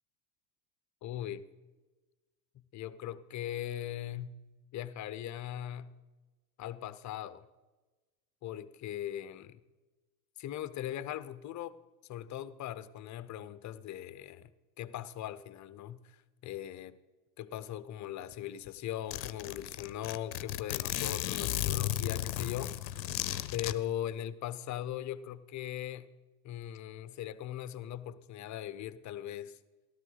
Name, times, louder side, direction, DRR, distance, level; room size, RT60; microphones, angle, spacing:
voice 1, 1.0-1.4 2.5-4.4 4.7-5.9 6.6-7.5 8.4-9.6 10.4-11.8 12.1-14.5 14.8-16.9 17.4-23.0 23.5-26.1 26.4-29.6, left 11 dB, 35° left, 0.7 m, -40 dB
Zipper (clothing), 18.3-18.4 18.7-18.8 19.1-23.7, left 14 dB, 85° left, 0.6 m, -34 dB
13.5 x 13.0 x 4.0 m
hypercardioid pair, 80°, 50 cm